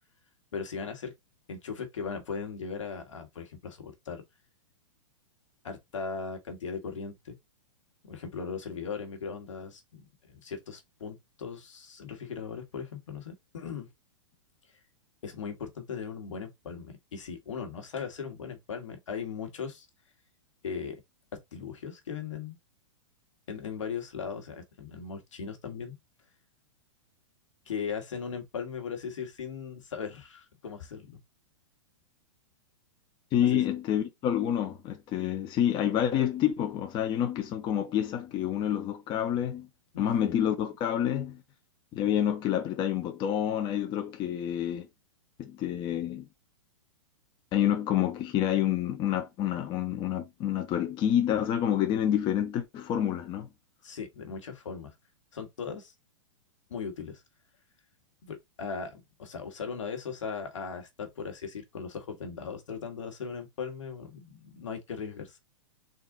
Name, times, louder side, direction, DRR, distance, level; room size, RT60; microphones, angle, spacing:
voice 1, 0.5-1.1 1.5-4.2 5.6-7.3 8.0-13.9 15.2-19.9 20.6-21.0 21.5-22.6 23.5-25.9 27.7-31.2 33.4-33.6 39.9-40.3 53.8-54.9 55.3-55.9 56.7-57.2 58.2-65.4, left 6 dB, 75° left, 1.4 m, -38 dB
voice 2, 33.3-39.7 40.0-41.4 41.9-44.9 45.4-46.3 47.5-53.5, left 10 dB, 30° left, 0.6 m, -28 dB
3.8 x 2.6 x 3.7 m
hypercardioid pair, 120°, 16 cm